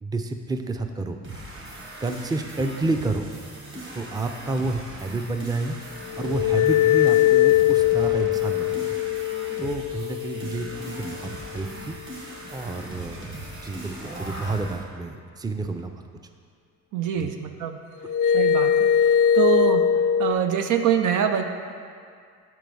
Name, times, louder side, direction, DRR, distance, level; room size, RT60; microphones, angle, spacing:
voice 1, 0.0-1.2 2.0-3.3 3.9-5.8 6.2-9.0 9.6-11.2 11.5-12.0 12.5-13.3 13.6-15.9 17.2-17.3, right 3 dB, 15° right, 6 dB, 0.5 m, -29 dB
sound 1, 1.2-14.8, right 1 dB, 45° right, 1.9 m, -39 dB
sound 2, 6.0-11.4 18.0-20.3, left 10 dB, 85° left, 0.5 m, -21 dB
voice 2, 16.9-17.8 18.3-18.9 19.3-19.8 20.2-21.4, right 8 dB, 80° right, 6 dB, 0.6 m, -24 dB
7.5 x 4.6 x 5.3 m, 2.2 s
cardioid pair, 90°, 30 cm